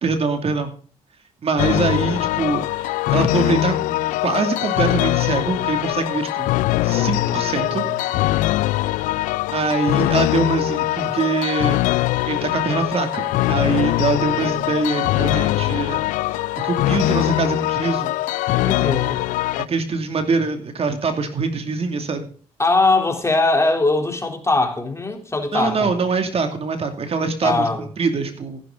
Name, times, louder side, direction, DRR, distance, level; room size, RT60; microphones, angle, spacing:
voice 1, 0.0-0.7 1.4-6.5 6.8-7.9 9.5-11.8 12.3-16.0 16.3-18.1 19.7-22.3 25.5-28.6, right 4 dB, 50° right, 2.5 m, -23 dB
sound 1, 1.6-19.6, left 17 dB, 80° left, 0.5 m, -22 dB
voice 2, 6.9-8.0 18.6-19.2 22.6-25.9 27.4-27.9, left 2 dB, 20° left, 3.3 m, -21 dB
15.5 x 10.5 x 3.9 m
supercardioid pair, 65°, 13 cm